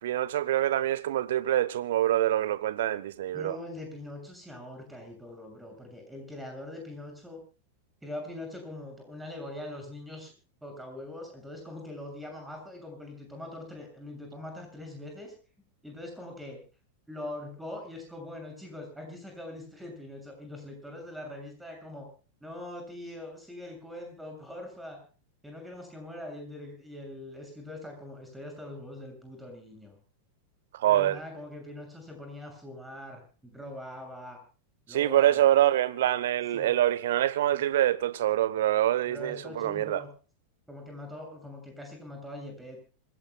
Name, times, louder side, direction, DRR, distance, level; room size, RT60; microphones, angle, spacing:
voice 1, 0.0-3.6 30.7-31.2 34.9-40.0, right 13 dB, 55° right, 1.0 m, -25 dB
voice 2, 3.3-7.4 8.0-10.3 10.6-15.3 15.8-16.6 17.1-22.1 22.4-25.0 25.4-30.0 30.9-34.4 34.9-35.6 36.5-36.7 39.1-40.1 40.7-42.8, left 1 dB, 5° right, 6.9 m, -42 dB
26.5 x 17.0 x 2.3 m
figure-of-eight pair, 90°, 0 cm